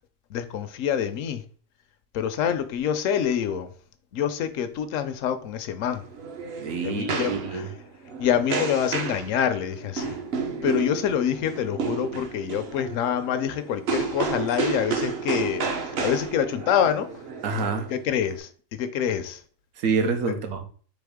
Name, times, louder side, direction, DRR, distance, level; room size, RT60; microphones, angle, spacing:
voice 1, 0.3-1.4 2.1-3.7 4.1-6.0 6.8-7.7 8.2-10.2 10.5-17.1 17.9-19.4, left 9 dB, 75° left, 0.9 m, -26 dB
sound 1, 5.9-18.4, right 5 dB, 55° right, 0.8 m, -31 dB
voice 2, 6.6-7.7 17.4-17.9 19.8-20.6, right 4 dB, 80° right, 1.2 m, -27 dB
4.2 x 3.4 x 3.5 m
omnidirectional pair, 1.4 m